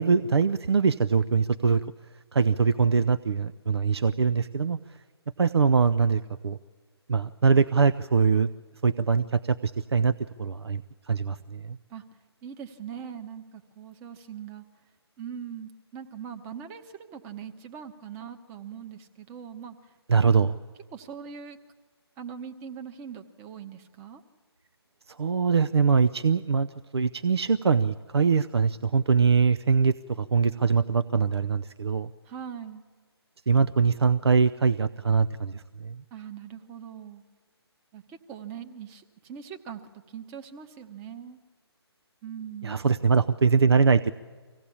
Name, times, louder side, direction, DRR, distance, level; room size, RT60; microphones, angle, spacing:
voice 1, 0.0-1.8 2.3-4.8 5.4-6.6 7.1-8.5 8.8-10.1 10.4-10.8 11.1-11.8 20.1-20.6 25.2-26.7 26.9-32.1 33.5-36.0 42.6-44.1, right 5 dB, 70° right, 13 dB, 0.6 m, -23 dB
voice 2, 12.4-14.6 15.2-19.9 20.9-21.6 22.2-24.2 32.2-32.8 36.1-37.2 37.9-39.8 40.1-41.4 42.2-42.8, right 8 dB, 15° right, 7 dB, 1.0 m, -41 dB
25.0 x 17.0 x 8.6 m, 1.6 s
figure-of-eight pair, 150°, 14 cm